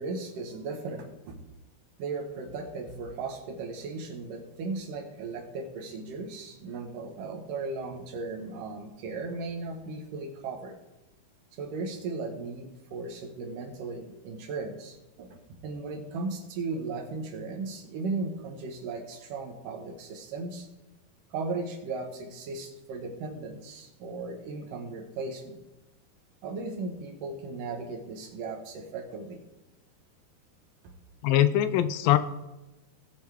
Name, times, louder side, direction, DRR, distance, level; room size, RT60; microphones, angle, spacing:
voice 1, 0.0-1.4 2.0-10.8 11.5-20.7 21.3-25.6 26.4-29.4 30.8-30.9, right 3 dB, 70° right, 3 dB, 2.9 m, -36 dB
voice 2, 31.2-32.2, left 12 dB, 80° left, 12 dB, 2.2 m, -22 dB
19.0 x 7.9 x 3.5 m, 1.0 s
omnidirectional pair, 4.2 m